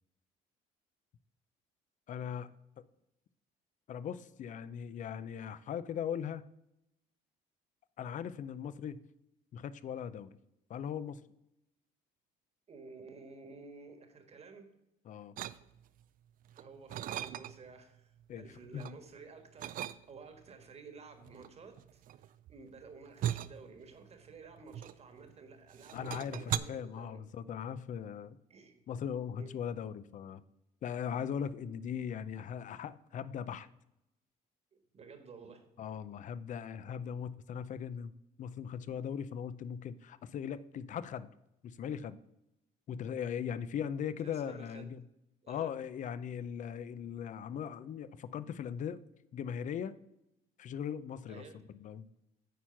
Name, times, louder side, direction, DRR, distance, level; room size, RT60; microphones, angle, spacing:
voice 1, 2.1-2.5 3.9-6.5 8.0-9.0 9.5-10.3 10.7-11.2 15.1-15.3 18.3-18.5 18.7-18.9 25.9-28.4 28.9-30.4 30.8-33.7 35.8-38.1 38.4-41.3 41.6-42.2 42.9-45.0 45.5-49.0 49.3-50.0 50.6-51.4 51.8-52.1, left 8 dB, 50° left, 15 dB, 0.5 m, -39 dB
voice 2, 12.7-14.7 16.6-27.2 28.5-28.8 29.4-29.5 34.9-35.6 44.2-44.9 45.4-45.7 51.3-51.6, right 4 dB, 40° right, 7 dB, 1.5 m, -52 dB
sound 1, 15.4-16.0 16.5-17.8 18.2-19.0 19.6-20.4 21.2-25.4 25.7-26.6, right 12 dB, 55° right, 0.4 m, -39 dB
9.2 x 4.4 x 5.7 m, 0.86 s
cardioid pair, 110°, 17 cm